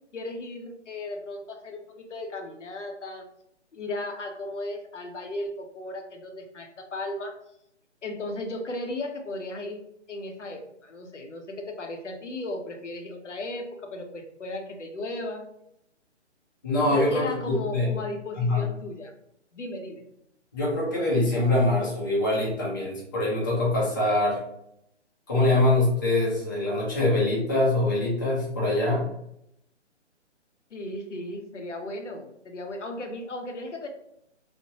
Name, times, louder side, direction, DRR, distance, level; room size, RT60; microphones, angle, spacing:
voice 1, 0.1-3.3 3.7-7.3 8.0-9.8 10.1-15.5 16.8-19.1 19.5-20.0 30.7-33.9, left 2 dB, 80° left, 4 dB, 0.7 m, -36 dB
voice 2, 16.6-17.9 18.4-18.6 20.5-24.4 25.3-29.1, left 2 dB, 20° left, -6 dB, 0.5 m, -24 dB
3.2 x 2.1 x 2.7 m, 0.76 s
figure-of-eight pair, 140°, 36 cm